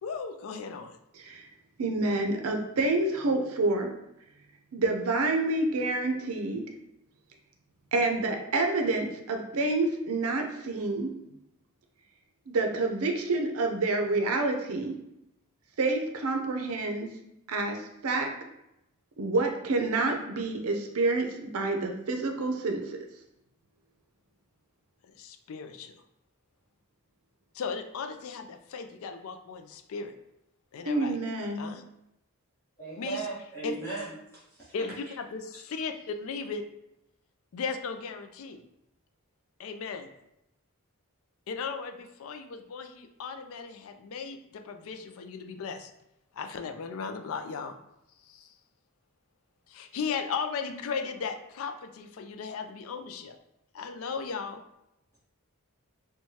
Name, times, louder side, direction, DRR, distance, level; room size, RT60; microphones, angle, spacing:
voice 1, 0.0-1.0 25.1-25.9 27.5-30.1 30.7-31.2 31.6-31.8 33.0-33.3 33.6-33.8 34.7-36.7 37.5-38.6 39.6-40.1 41.5-45.9 46.3-47.8 48.2-48.5 49.7-53.4 53.7-54.6, left 5 dB, 65° left, 7 dB, 0.3 m, -36 dB
voice 2, 1.8-3.9 4.7-6.6 7.9-11.1 12.5-14.9 15.8-17.1 17.5-17.8 18.0-18.3 19.2-23.0 30.9-31.7, right 2 dB, 75° right, 3 dB, 0.5 m, -28 dB
voice 3, 32.8-34.7, right 3 dB, 10° left, -11 dB, 1.2 m, -37 dB
4.5 x 2.2 x 2.7 m, 0.85 s
head